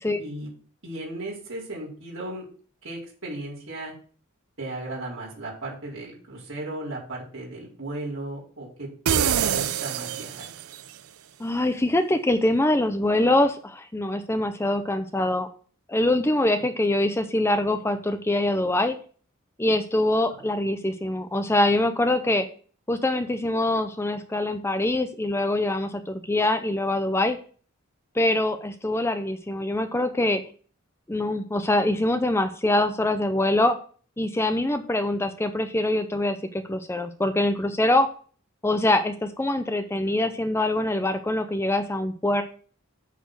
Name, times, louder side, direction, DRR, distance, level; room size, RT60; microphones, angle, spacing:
voice 1, 0.8-2.5 2.8-3.9 4.6-8.9 9.2-10.4 20.3-20.4, right 1 dB, 65° right, -6 dB, 4.5 m, -36 dB
sound 1, 9.1-10.9, right 8 dB, 85° right, 0.5 m, -25 dB
voice 2, 11.4-15.5 15.9-19.0 19.6-22.5 22.9-27.4 28.1-30.4 31.1-33.8 34.2-38.1 38.6-42.4, left 1 dB, 10° left, 8 dB, 0.5 m, -24 dB
8.1 x 4.2 x 6.3 m, 0.43 s
head